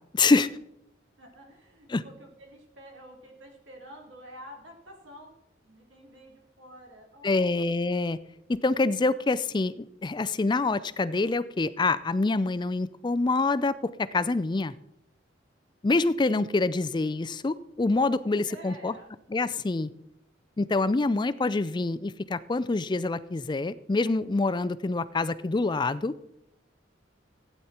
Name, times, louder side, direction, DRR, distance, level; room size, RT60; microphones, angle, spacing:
voice 1, 0.1-0.5 1.9-2.0 7.2-8.2 8.6-13.7 14.1-14.7 15.8-18.9 19.3-19.9 20.6-26.1, left 3 dB, 25° left, 15 dB, 0.4 m, -26 dB
voice 2, 1.2-5.3 5.6-7.9 18.5-19.1, equal, 85° right, 1 dB, 3.6 m, -49 dB
15.5 x 9.4 x 4.3 m, 0.81 s
head